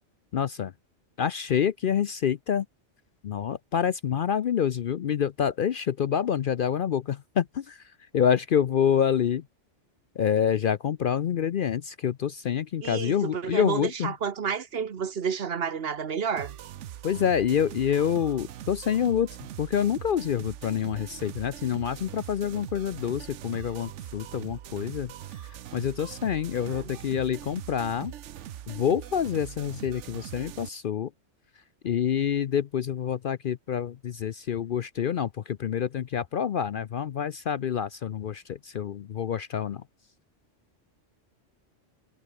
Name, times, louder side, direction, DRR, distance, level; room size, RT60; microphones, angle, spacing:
voice 1, 0.3-0.7 1.2-2.7 3.2-7.8 8.1-9.4 10.2-14.1 17.0-19.3 19.6-25.1 25.7-28.1 28.7-31.1 31.8-39.8, left 8 dB, 55° left, 0.6 m, -27 dB
voice 2, 12.8-16.6 26.7-26.9, right 6 dB, 55° right, 1.2 m, -30 dB
sound 1, 16.4-30.7, right 11 dB, 75° right, 1.0 m, -41 dB
omnidirectional pair, 1.2 m